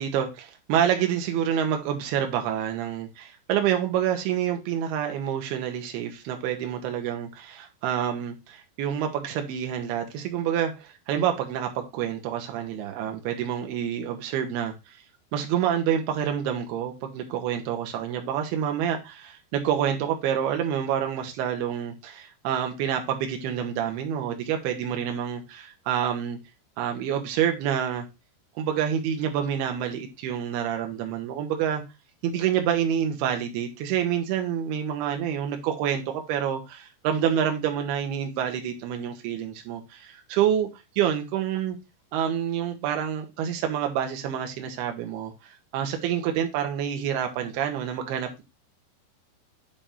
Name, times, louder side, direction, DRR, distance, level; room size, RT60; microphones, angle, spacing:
voice 1, 0.0-15.0 15.3-26.4 26.8-28.1 28.6-31.8 32.2-41.8 42.1-48.4, right 9 dB, 75° right, 2.9 m, -28 dB
8.8 x 3.0 x 5.1 m
omnidirectional pair, 5.0 m